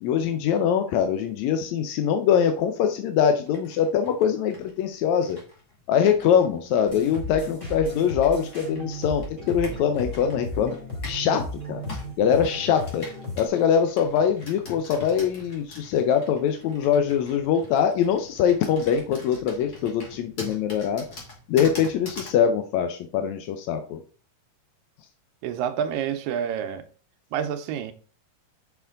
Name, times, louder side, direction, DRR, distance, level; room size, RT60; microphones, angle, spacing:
voice 1, 0.0-5.4 5.9-10.8 11.0-11.8 12.2-13.1 13.4-21.1 21.5-24.0, left 8 dB, 75° left, 1.7 m, -23 dB
Computer keyboard, 3.5-11.3 11.9-22.4, left 2 dB, 35° left, 2.1 m, -44 dB
sound 1, 6.9-13.5, left 1 dB, 10° left, 4.0 m, -35 dB
voice 2, 25.4-26.9 27.3-27.9, right 8 dB, 85° right, 2.4 m, -28 dB
6.9 x 5.8 x 3.8 m
omnidirectional pair, 3.9 m